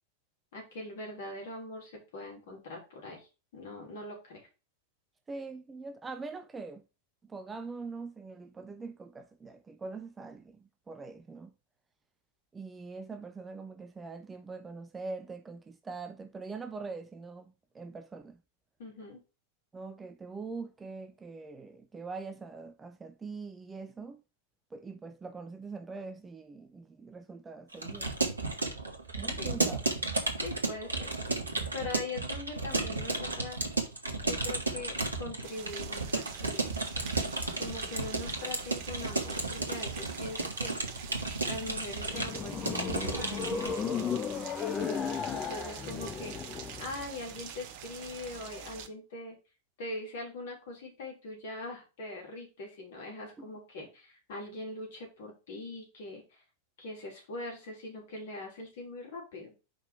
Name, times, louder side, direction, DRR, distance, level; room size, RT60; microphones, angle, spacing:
voice 1, 0.5-3.3 3.5-4.5 18.8-19.2 29.4-29.6 30.4-31.1 31.7-33.6 34.2-36.8 37.6-40.8 41.5-43.7 45.3-49.4 49.8-56.4 56.8-59.5, left 2 dB, 55° left, 3.5 m, -42 dB
voice 2, 5.3-6.8 7.2-11.5 12.5-18.4 19.7-24.2 24.7-28.1 29.2-29.9 53.4-53.5, right 4 dB, 15° right, 0.7 m, -43 dB
Keyboard (musical) / Computer keyboard, 27.7-43.8, right 3 dB, 80° right, 1.4 m, -33 dB
Rain, 35.4-48.9, right 8 dB, 45° right, 0.9 m, -46 dB
sound 1, 41.7-47.1, left 6 dB, 25° left, 0.8 m, -35 dB
5.3 x 5.0 x 5.0 m
figure-of-eight pair, 90°, 0 cm